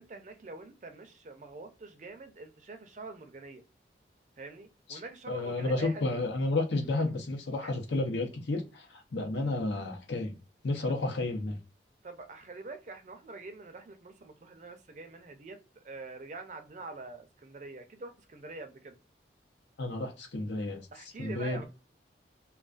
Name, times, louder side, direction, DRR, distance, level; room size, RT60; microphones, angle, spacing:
voice 1, 0.0-3.6 4.4-6.0 7.6-7.7 12.0-19.0 20.9-21.6, right 3 dB, 40° right, 0.4 m, -45 dB
voice 2, 5.3-10.3 10.6-11.6 19.8-20.9 21.2-21.6, left 2 dB, 80° left, 0.7 m, -31 dB
2.3 x 2.2 x 2.4 m
head